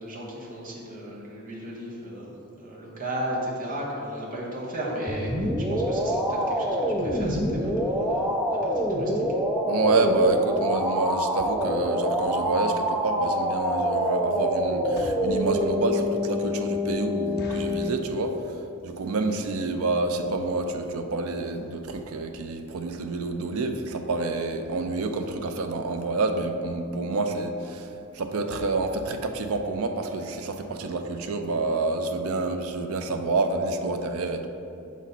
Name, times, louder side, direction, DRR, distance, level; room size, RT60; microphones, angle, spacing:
voice 1, 0.0-9.2, right 1 dB, 40° right, -5 dB, 1.2 m, -35 dB
sound 1, 5.1-17.9, equal, 5° right, 0.4 m, -26 dB
voice 2, 9.7-18.4 18.8-34.5, right 3 dB, 75° right, 6 dB, 0.5 m, -28 dB
sound 2, 14.9-15.4 15.9-16.0 16.3-16.4 16.8-16.9 17.4-17.9 18.5-18.8 19.0-19.1 19.4-19.6 20.2-20.3 20.5-20.7 21.0-21.1 21.3-21.4, left 2 dB, 50° left, 0.6 m, -43 dB
6.1 x 4.1 x 4.1 m, 2.7 s
head